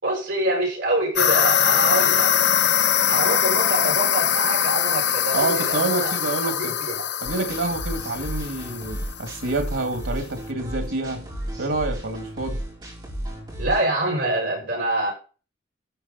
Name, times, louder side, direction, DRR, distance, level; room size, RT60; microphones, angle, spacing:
voice 1, 0.0-2.3 3.1-6.1 6.5-7.1 13.6-15.1, right 1 dB, 60° right, 6.7 m, -25 dB
sound 1, 1.2-9.4, left 9 dB, 60° left, 0.6 m, -22 dB
voice 2, 5.3-6.8 7.2-11.3 11.6-12.6, right 2 dB, 90° right, 2.3 m, -27 dB
sound 2, 7.2-13.8, right 1 dB, 25° right, 5.2 m, -33 dB
13.0 x 6.3 x 4.2 m
head